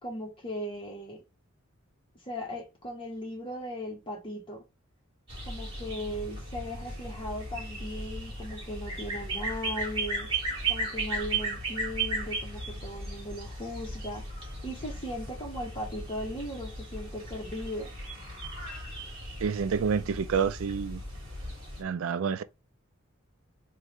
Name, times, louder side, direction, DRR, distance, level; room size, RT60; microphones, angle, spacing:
voice 1, 0.0-1.2 2.2-4.6 5.5-10.3 10.7-14.2 14.6-17.9, equal, 25° left, 1.4 m, -38 dB
sound 1, 5.3-21.8, right 2 dB, 25° right, 2.3 m, -36 dB
voice 2, 19.4-21.0 21.8-22.4, right 6 dB, 75° right, 0.4 m, -28 dB
3.6 x 3.1 x 3.3 m
head